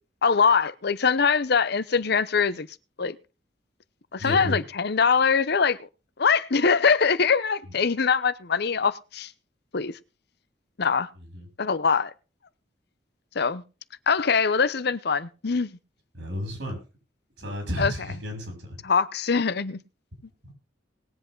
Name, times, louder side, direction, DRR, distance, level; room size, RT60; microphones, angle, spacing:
voice 1, 0.2-2.7 3.0-3.2 4.1-5.9 6.2-9.3 9.7-10.0 10.8-11.1 11.6-12.1 13.3-13.6 14.1-15.8 17.8-17.9 18.8-19.8, left 5 dB, 60° left, 0.8 m, -23 dB
voice 2, 4.2-4.6 11.3-11.4 16.1-16.8 17.4-18.8, left 1 dB, 70° right, 6.6 m, -32 dB
20.0 x 7.9 x 3.9 m
head